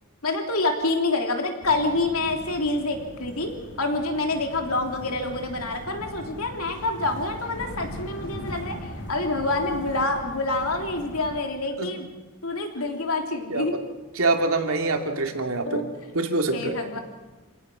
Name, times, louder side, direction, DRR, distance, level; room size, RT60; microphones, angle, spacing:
voice 1, 0.2-8.8 9.1-12.1 12.4-13.7 15.7-15.9 16.5-17.0, left 2 dB, 75° left, 3 dB, 3.3 m, -27 dB
sound 1, 1.6-11.4, equal, 55° left, 2.9 m, -39 dB
voice 2, 14.1-15.8 16.1-17.0, right 2 dB, 70° right, 4 dB, 2.6 m, -25 dB
27.0 x 17.5 x 6.2 m, 1.2 s
head